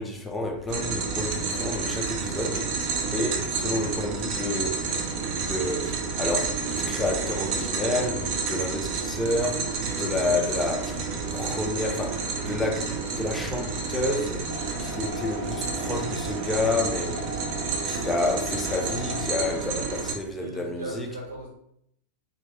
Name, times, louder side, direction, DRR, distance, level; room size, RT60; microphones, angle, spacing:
voice 1, 0.0-2.7 3.1-4.9 5.4-11.0 11.3-12.9 13.2-14.5 14.8-17.3 17.9-21.1, left 2 dB, 10° left, 0.4 m, -30 dB
sound 1, 0.7-20.1, right 4 dB, 45° right, 0.5 m, -30 dB
voice 2, 9.9-10.2 20.3-21.5, right 2 dB, 70° right, 1.2 m, -39 dB
sound 2, 14.5-19.5, left 3 dB, 75° left, 0.4 m, -39 dB
2.4 x 2.1 x 3.8 m
figure-of-eight pair, 90°, 0 cm